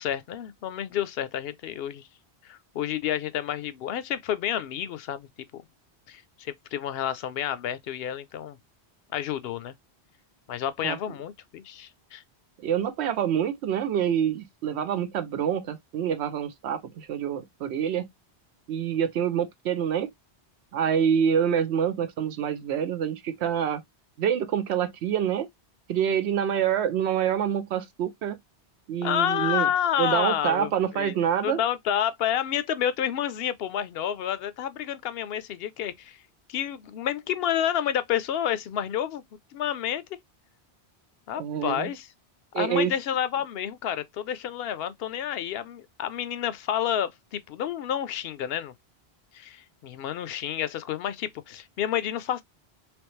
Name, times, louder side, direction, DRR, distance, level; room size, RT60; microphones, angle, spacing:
voice 1, 0.0-2.1 2.4-5.6 6.1-8.6 9.1-9.7 10.5-12.2 29.0-31.1 31.4-36.2 36.5-39.2 39.5-40.2 41.3-42.1 42.6-48.7 49.3-52.4, left 10 dB, 70° left, 0.8 m, -29 dB
voice 2, 12.6-18.1 18.7-20.1 20.7-23.8 24.2-25.5 25.9-28.4 28.9-29.7 30.0-31.6 41.4-41.9 42.5-42.9, right 9 dB, 85° right, 0.9 m, -26 dB
3.4 x 3.0 x 3.1 m
omnidirectional pair, 1.1 m